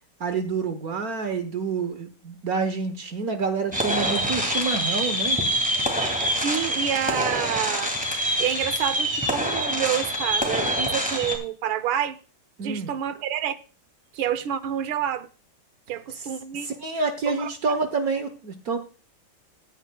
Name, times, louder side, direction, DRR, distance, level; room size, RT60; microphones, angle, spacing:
voice 1, 0.2-5.4 12.6-12.9 16.6-18.8, right 4 dB, 55° right, 1.3 m, -28 dB
sound 1, 3.7-11.4, equal, 5° right, 2.2 m, -25 dB
voice 2, 6.4-7.9 8.4-12.2 12.6-13.6 14.1-15.3 15.9-16.7 17.3-17.8, right 10 dB, 75° right, 1.6 m, -28 dB
15.0 x 10.0 x 2.2 m
omnidirectional pair, 2.3 m